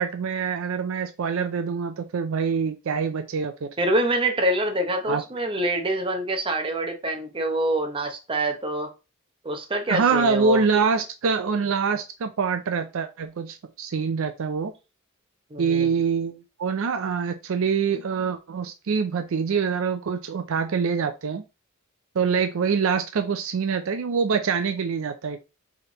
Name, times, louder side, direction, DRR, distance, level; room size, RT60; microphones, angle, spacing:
voice 1, 0.0-3.7 5.1-5.2 9.9-14.7 15.6-21.4 22.2-25.4, right 5 dB, 65° right, 0.4 m, -25 dB
voice 2, 3.8-8.9 9.4-10.6 15.5-15.9, right 1 dB, 25° right, 0.8 m, -25 dB
4.7 x 3.2 x 3.0 m
head